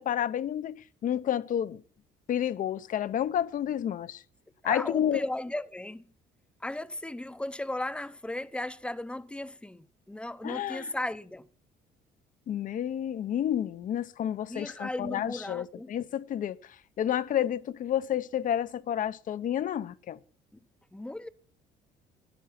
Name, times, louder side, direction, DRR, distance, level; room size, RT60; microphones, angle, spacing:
voice 1, 0.0-1.8 2.3-4.2 4.6-5.2 10.4-10.9 12.5-16.6 17.0-20.2, left 10 dB, 50° left, 0.7 m, -30 dB
voice 2, 4.6-6.0 6.6-11.5 14.5-15.9 20.9-21.3, left 1 dB, 5° left, 0.7 m, -36 dB
12.5 x 10.5 x 5.8 m
cardioid pair, 110°, 17 cm